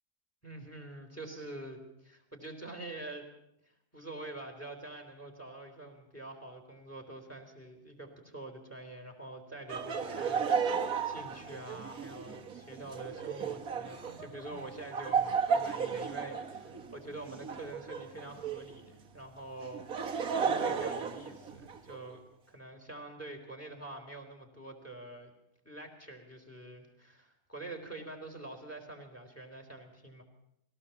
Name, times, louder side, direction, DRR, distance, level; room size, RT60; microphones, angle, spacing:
voice 1, 0.4-3.3 3.6-22.2 22.5-25.3 25.6-30.2, right 2 dB, 10° left, 4 dB, 3.5 m, -46 dB
Laughter, 9.7-18.8 19.6-22.0, right 6 dB, 65° right, 1.9 m, -34 dB
21.0 x 17.5 x 7.1 m, 0.80 s
omnidirectional pair, 1.7 m